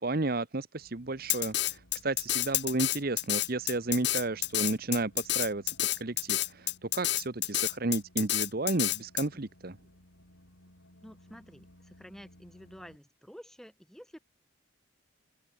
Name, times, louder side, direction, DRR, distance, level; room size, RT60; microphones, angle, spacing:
voice 1, 0.0-5.6 6.0-9.8, right 2 dB, 45° right, 1.0 m, -32 dB
sound 1, 0.8-13.0, left 1 dB, 70° left, 6.1 m, -60 dB
Drum kit, 1.3-9.2, left 15 dB, 55° left, 1.4 m, -29 dB
voice 2, 11.0-14.2, equal, ahead, 4.6 m, -50 dB
open air
head